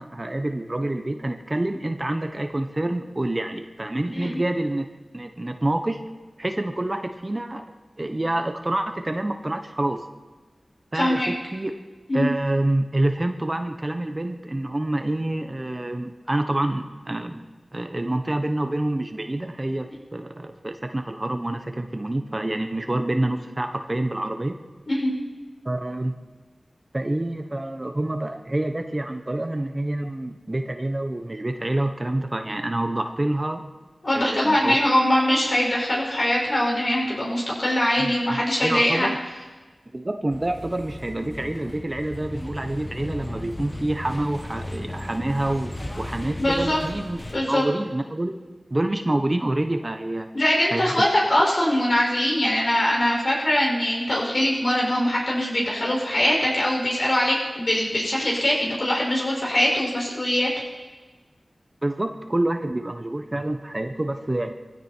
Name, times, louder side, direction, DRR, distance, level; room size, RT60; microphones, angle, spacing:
voice 1, 0.0-4.9 5.1-6.0 6.4-7.6 8.0-10.1 10.9-11.7 12.1-17.4 17.7-24.6 25.6-26.1 26.9-33.6 34.1-34.8 38.0-39.2 39.9-47.2 47.5-48.4 48.7-50.3 50.7-51.1 61.8-64.5, right 1 dB, 30° right, 6 dB, 1.1 m, -27 dB
voice 2, 10.9-11.3 12.1-12.3 24.9-25.1 34.0-39.1 46.4-46.8 47.3-47.6 50.3-60.5, left 1 dB, 55° left, -3 dB, 6.0 m, -22 dB
sound 1, 40.3-47.4, left 1 dB, 30° left, 1.6 m, -36 dB
20.5 x 15.5 x 4.6 m, 1.3 s
wide cardioid pair, 55°, 0 cm